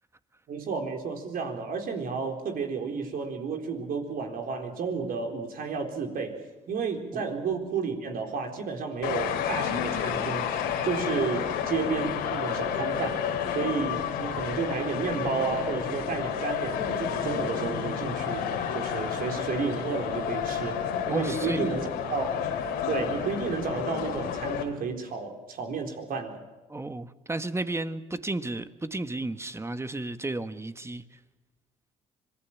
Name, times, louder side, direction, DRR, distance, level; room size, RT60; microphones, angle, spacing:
voice 1, 0.5-6.4 6.7-10.5 10.8-18.4 18.7-21.8 22.1-22.4 22.9-26.4, right 5 dB, 65° right, 3 dB, 4.1 m, -32 dB
sound 1, 9.0-24.6, left 8 dB, 90° left, 3.1 m, -30 dB
voice 2, 21.1-21.8 26.7-31.2, right 2 dB, 15° right, 11 dB, 1.4 m, -33 dB
25.5 x 19.5 x 7.3 m, 1.2 s
supercardioid pair, 70°, 16 cm